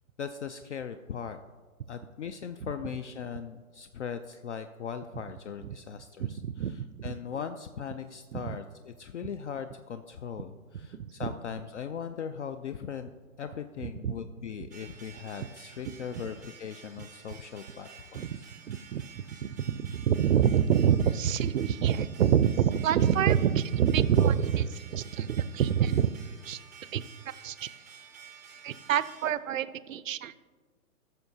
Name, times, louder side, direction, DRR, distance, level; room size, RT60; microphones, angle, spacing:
voice 1, 0.2-1.4 1.9-13.1 13.4-18.5, left 7 dB, 55° left, 9 dB, 0.5 m, -39 dB
voice 2, 6.2-7.1 8.3-8.6 10.9-11.3 14.0-14.1 18.1-18.3 18.7-19.0 19.4-26.1 26.5-26.6 26.9-27.0 27.4-27.7 28.6-30.3, right 9 dB, 65° right, 16 dB, 0.5 m, -26 dB
sound 1, 14.7-29.3, right 6 dB, 15° right, 0.4 m, -51 dB
16.0 x 6.6 x 2.7 m, 1.5 s
hypercardioid pair, 140°, 44 cm